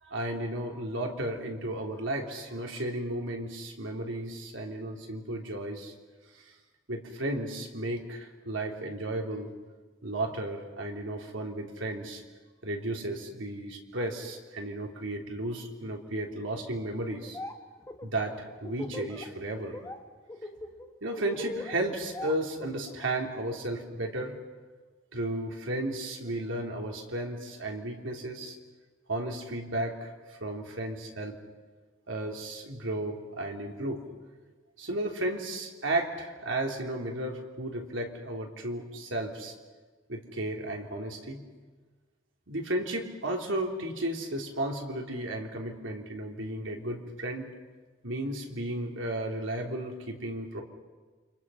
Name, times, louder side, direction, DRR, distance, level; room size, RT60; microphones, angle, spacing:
voice 1, 0.0-5.9 6.3-6.5 6.9-9.5 10.0-12.2 12.6-17.4 18.0-19.8 21.0-24.4 25.1-28.6 29.1-31.4 32.1-34.0 34.8-39.5 40.1-41.4 42.5-47.5 48.0-50.6, right 1 dB, 80° right, 1 dB, 3.4 m, -34 dB
Laughter, 17.1-17.5 17.8-19.2 19.6-20.0 20.3-23.1, left 2 dB, 15° left, 1.8 m, -39 dB
29.5 x 25.5 x 5.7 m, 1.4 s
head